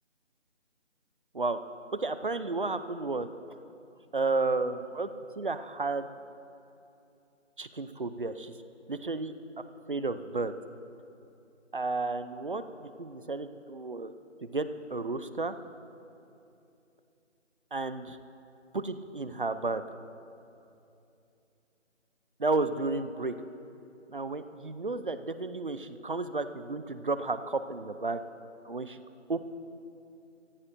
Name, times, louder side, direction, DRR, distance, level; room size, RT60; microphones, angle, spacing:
voice 1, 2.0-3.3 4.1-5.1 5.4-6.1 7.6-8.5 8.9-9.3 9.9-10.5 11.7-14.1 14.4-15.5 17.7-18.2 18.7-19.8 22.4-23.3 24.1-28.2 28.6-29.0 29.3-29.5, right 3 dB, 45° right, 11 dB, 0.6 m, -32 dB
25.5 x 14.5 x 2.7 m, 2.7 s
figure-of-eight pair, 170°, 37 cm